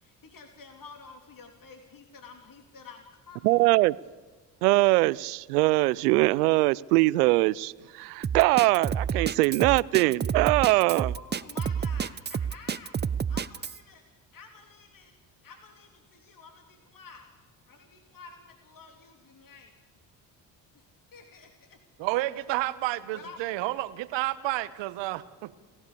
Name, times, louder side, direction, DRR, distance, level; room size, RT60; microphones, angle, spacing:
voice 1, 0.0-3.5 11.1-12.9 13.3-14.0 14.3-15.1 15.4-17.3 17.7-19.7 20.7-20.8 21.1-21.8 23.1-23.4, left 4 dB, 45° left, 4 dB, 3.3 m, -49 dB
voice 2, 3.4-4.0 4.6-11.1, right 21 dB, 85° right, 24 dB, 0.6 m, -22 dB
Drum kit, 8.2-13.8, right 7 dB, 25° right, 0.7 m, -29 dB
voice 3, 22.0-25.6, right 17 dB, 70° right, 16 dB, 1.2 m, -30 dB
29.0 x 15.5 x 6.9 m, 1.3 s
hypercardioid pair, 55°, 45 cm